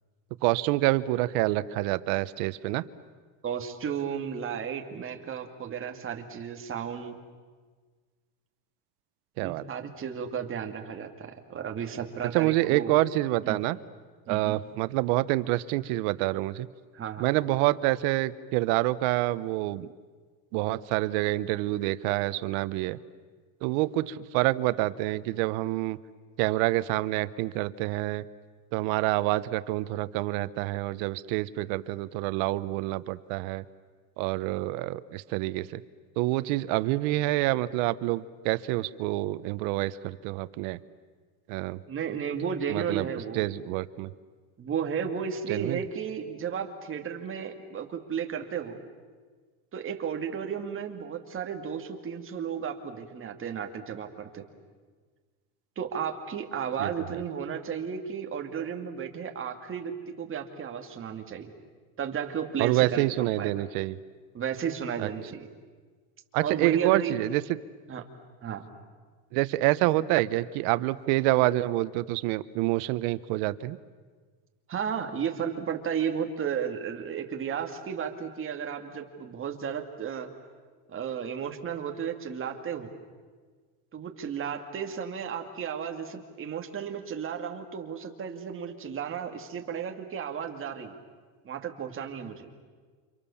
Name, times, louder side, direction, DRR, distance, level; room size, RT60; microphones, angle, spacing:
voice 1, 0.4-2.8 9.4-9.6 12.3-13.8 14.3-16.7 17.2-19.9 20.5-23.0 23.6-26.0 26.4-28.2 28.7-33.6 34.2-35.8 36.2-40.8 41.5-41.8 42.7-43.1 43.3-44.1 45.5-45.8 56.8-57.2 62.6-64.0 65.0-65.1 66.3-67.4 69.3-73.8, right 18 dB, 80° right, 16 dB, 1.1 m, -27 dB
voice 2, 3.4-7.1 9.4-13.0 13.4-13.6 14.3-14.6 16.9-17.3 41.9-43.5 44.6-48.8 49.7-54.5 55.8-61.5 62.0-63.6 64.3-65.5 66.4-67.2 67.9-68.0 68.4-68.7 74.7-80.3 80.9-82.9 83.9-91.0 91.4-92.5, right 7 dB, 30° right, 4 dB, 2.5 m, -33 dB
29.0 x 26.5 x 7.2 m, 1.5 s
cardioid pair, 150°, 41 cm